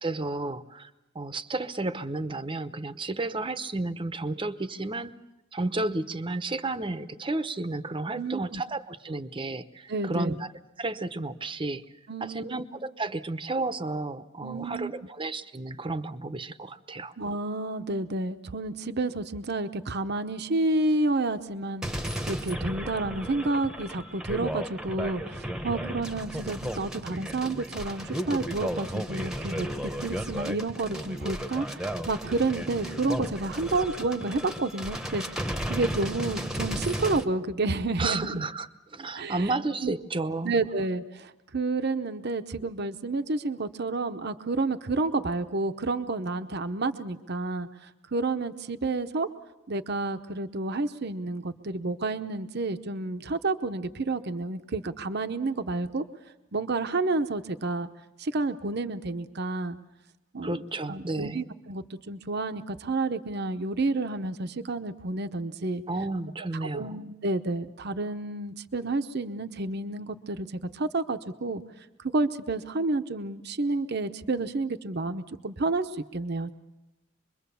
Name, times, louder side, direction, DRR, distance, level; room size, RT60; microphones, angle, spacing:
voice 1, 0.0-5.2 5.5-10.5 10.8-11.8 12.2-17.1 38.0-40.5 60.4-61.4 65.9-67.0, right 2 dB, 25° right, 12 dB, 0.8 m, -32 dB
voice 2, 8.1-8.6 9.9-10.3 12.1-12.5 14.4-14.9 17.2-29.7 30.0-38.5 39.1-39.5 39.8-39.9 40.4-49.3 49.7-56.0 56.5-57.9 58.2-59.8 60.3-60.6 60.9-65.8 66.7-70.5 70.7-71.6 72.1-76.5, right 3 dB, 55° right, 9 dB, 0.8 m, -30 dB
sound 1, 21.8-37.2, equal, 5° right, 1.0 m, -34 dB
26.0 x 22.5 x 7.0 m, 0.98 s
head